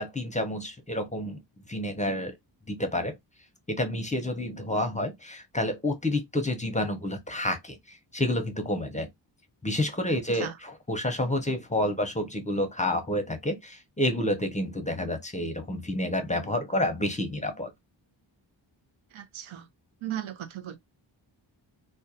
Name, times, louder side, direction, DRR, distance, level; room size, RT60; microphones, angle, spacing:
voice 1, 0.0-1.4 1.7-2.3 2.7-3.1 3.7-7.8 8.1-9.1 9.6-17.7, left 1 dB, 15° left, 0.5 m, -29 dB
voice 2, 10.1-10.5 19.1-19.6 20.0-20.8, right 11 dB, 85° right, 0.6 m, -37 dB
2.3 x 2.2 x 2.6 m
wide cardioid pair, 90°, 46 cm